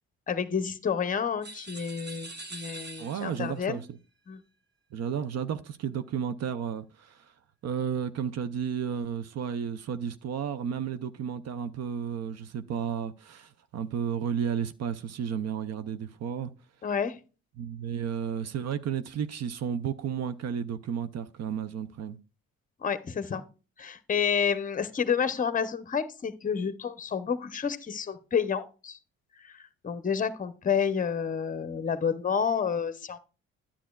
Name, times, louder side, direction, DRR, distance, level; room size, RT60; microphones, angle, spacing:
voice 1, 0.3-3.8 4.3-4.4 16.8-17.2 22.8-23.4 23.8-29.0 29.4-33.2, left 7 dB, 25° left, 0.7 m, -29 dB
sound 1, 1.4-3.6, right 2 dB, 35° right, 1.1 m, -43 dB
voice 2, 3.0-3.9 4.9-7.3 7.6-16.5 17.6-22.2, right 8 dB, 60° right, 0.5 m, -32 dB
10.0 x 8.5 x 2.3 m
cardioid pair, 90°, 30 cm